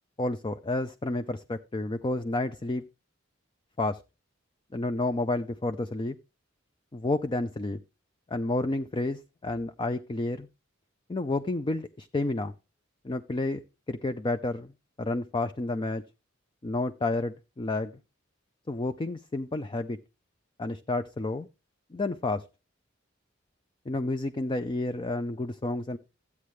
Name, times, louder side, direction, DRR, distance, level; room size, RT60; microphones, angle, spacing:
voice 1, 0.2-2.8 3.8-4.0 4.7-6.2 6.9-7.8 8.3-10.5 11.1-12.5 13.0-13.6 13.9-14.7 15.0-16.0 16.6-17.9 18.7-20.0 20.6-21.5 21.9-22.4 23.9-26.0, left 2 dB, 25° left, 0.5 m, -30 dB
13.5 x 8.4 x 3.2 m
head